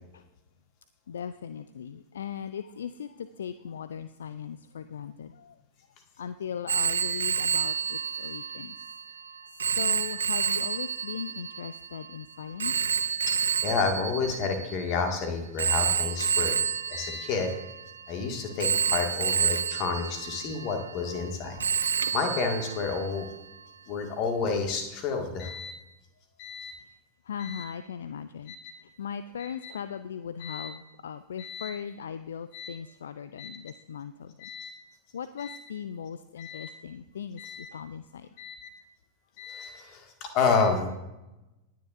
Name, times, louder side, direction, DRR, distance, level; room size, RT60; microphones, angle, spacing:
voice 1, 1.1-5.6 6.2-8.9 9.5-12.7 27.3-28.5 29.0-34.5 35.1-38.3, left 7 dB, 65° left, 12 dB, 0.4 m, -38 dB
Telephone, 6.7-15.0 15.6-18.1 18.6-21.3 21.6-23.3, right 7 dB, 70° right, 0.4 m, -29 dB
voice 2, 13.6-16.6 16.9-17.5 18.1-23.3 23.9-25.7 26.4-26.7 27.4-27.6 28.5-28.7 29.6-29.7 30.4-30.7 31.4-31.7 32.5-32.7 33.4-33.5 34.4-34.7 35.4-35.6 36.4-36.7 37.4-37.7 38.4-38.7 39.4-40.9, left 5 dB, 40° left, 4 dB, 1.9 m, -30 dB
19.0 x 9.4 x 2.6 m, 0.99 s
figure-of-eight pair, 90°, 0 cm